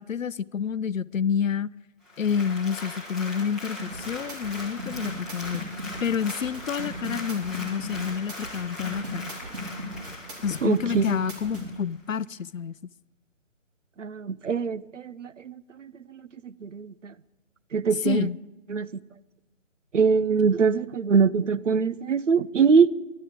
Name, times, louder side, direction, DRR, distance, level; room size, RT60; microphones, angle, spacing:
voice 1, 0.0-1.7 2.2-5.7 6.0-9.3 10.4-12.8 17.9-18.4, left 7 dB, 85° left, 20 dB, 0.6 m, -29 dB
Applause, 2.0-11.8 12.3-12.4, left 2 dB, ahead, 1.8 m, -40 dB
sound 1, 3.8-11.7, equal, 40° right, 4.2 m, -37 dB
voice 2, 10.6-11.1 14.0-17.1 17.7-18.3 18.7-18.9 19.9-22.9, right 5 dB, 70° right, 16 dB, 0.8 m, -23 dB
13.5 x 11.5 x 8.6 m, 1.1 s
figure-of-eight pair, 155°, 38 cm